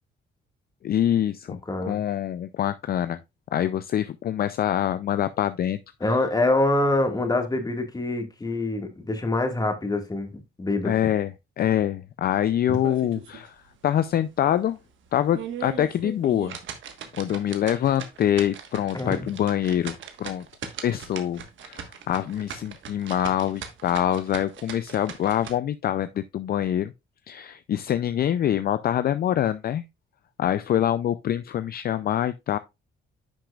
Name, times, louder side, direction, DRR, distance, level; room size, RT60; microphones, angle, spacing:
voice 1, 0.8-1.6 1.9-3.2 3.5-6.2 10.8-13.6 13.8-14.8 15.1-16.6 17.2-20.5 20.8-26.9 27.3-29.8 30.4-32.6, left 11 dB, 50° left, 0.4 m, -25 dB
voice 2, 1.7-2.0 6.0-10.9 12.7-12.8 18.9-19.3, left 2 dB, 20° left, 1.8 m, -25 dB
sound 1, 12.7-13.5 13.9-14.0 14.5-14.6 15.1-25.5, right 8 dB, 75° right, 1.3 m, -39 dB
10.0 x 6.0 x 2.4 m
cardioid pair, 90°, 20 cm